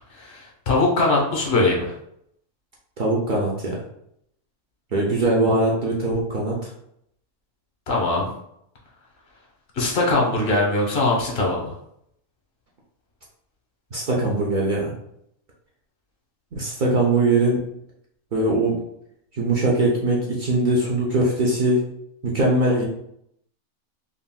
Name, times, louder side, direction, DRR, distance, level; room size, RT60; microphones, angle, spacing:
voice 1, 0.1-1.9 7.9-8.3 9.8-11.7, left 2 dB, 45° left, -2 dB, 0.8 m, -21 dB
voice 2, 3.0-3.7 4.9-6.5 13.9-14.9 16.6-17.6 18.3-18.8 19.3-21.8 22.2-22.8, right 2 dB, 70° right, -4 dB, 0.4 m, -21 dB
3.6 x 2.5 x 2.2 m, 0.73 s
omnidirectional pair, 1.6 m